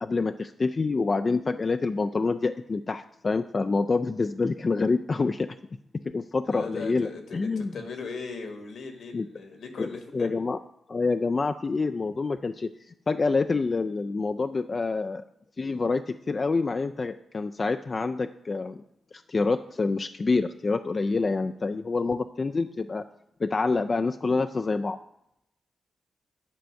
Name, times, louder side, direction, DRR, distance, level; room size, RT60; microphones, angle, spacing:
voice 1, 0.0-5.5 6.1-7.7 9.1-9.3 9.8-10.6 10.9-15.2 15.6-18.8 19.1-23.1 23.4-25.0, left 3 dB, 35° left, 8 dB, 0.3 m, -27 dB
voice 2, 6.4-10.3, left 4 dB, 70° left, 5 dB, 1.5 m, -38 dB
10.5 x 4.6 x 6.4 m, 0.81 s
wide cardioid pair, 120°, 0 cm